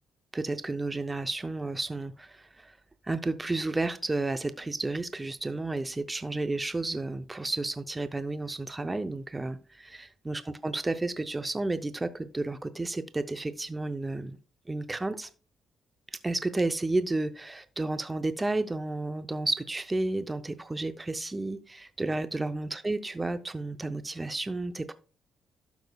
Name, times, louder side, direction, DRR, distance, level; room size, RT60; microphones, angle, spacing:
voice 1, 0.3-2.8 3.0-14.4 14.7-15.3 16.2-24.9, right 2 dB, 20° right, 11 dB, 0.5 m, -32 dB
12.0 x 7.0 x 2.3 m, 0.36 s
cardioid pair, 90°, 0 cm